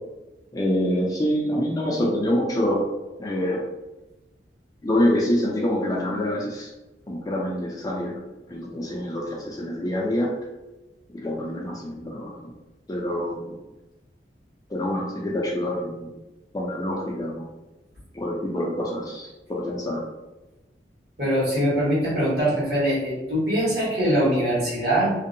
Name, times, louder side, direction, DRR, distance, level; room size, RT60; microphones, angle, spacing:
voice 1, 0.5-2.8 3.2-3.6 4.8-6.7 7.1-8.1 8.5-10.3 11.1-12.3 12.9-13.5 14.7-16.1 16.5-17.4 18.1-20.0, left 1 dB, 20° left, -2 dB, 0.4 m, -26 dB
voice 2, 21.2-25.1, equal, 60° right, -8 dB, 1.4 m, -22 dB
2.6 x 2.1 x 2.6 m, 1.1 s
head